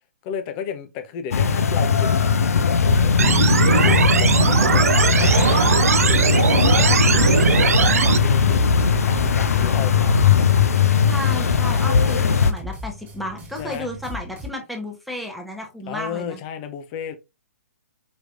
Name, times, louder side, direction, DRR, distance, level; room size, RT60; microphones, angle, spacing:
voice 1, 0.2-5.7 6.0-10.5 13.6-13.9 15.9-17.1, left 8 dB, 30° left, 0.7 m, -34 dB
sound 1, 1.3-12.5, left 6 dB, 65° left, 0.6 m, -19 dB
sound 2, 3.2-8.2, right 6 dB, 70° right, 0.4 m, -19 dB
voice 2, 7.0-7.5 11.1-16.4, left 1 dB, ahead, 1.0 m, -33 dB
sound 3, 7.2-14.5, equal, 20° right, 1.9 m, -35 dB
5.1 x 3.1 x 2.5 m
figure-of-eight pair, 130°, 8 cm